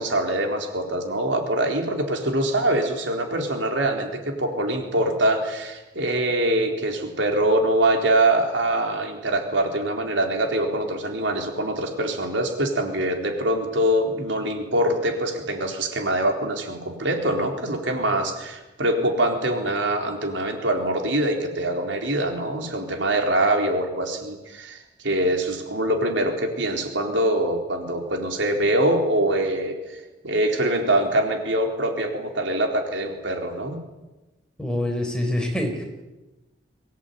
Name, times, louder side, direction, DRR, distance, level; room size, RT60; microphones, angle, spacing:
voice 1, 0.0-33.8, right 1 dB, 75° right, 3 dB, 4.1 m, -24 dB
voice 2, 34.6-35.8, left 1 dB, 5° left, 2 dB, 4.4 m, -25 dB
24.0 x 17.5 x 9.4 m, 1.1 s
head